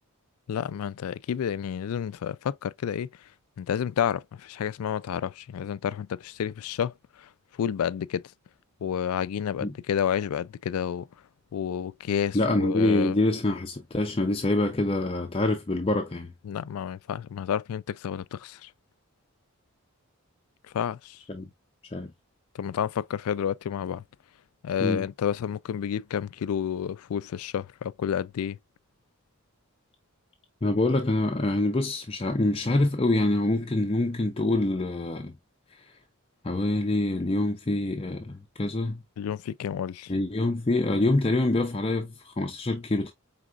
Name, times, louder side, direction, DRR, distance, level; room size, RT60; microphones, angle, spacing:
voice 1, 0.5-3.1 3.6-6.9 7.2-7.3 7.6-8.3 8.8-11.1 11.5-13.2 16.4-18.7 20.7-21.2 22.5-24.0 24.6-28.6 39.2-40.1, left 8 dB, 75° left, 0.3 m, -30 dB
voice 2, 12.3-16.3 21.3-21.5 21.9-22.1 24.8-25.1 30.6-35.3 36.4-39.0 40.1-43.1, left 2 dB, 25° left, 0.5 m, -25 dB
4.9 x 3.5 x 2.4 m
head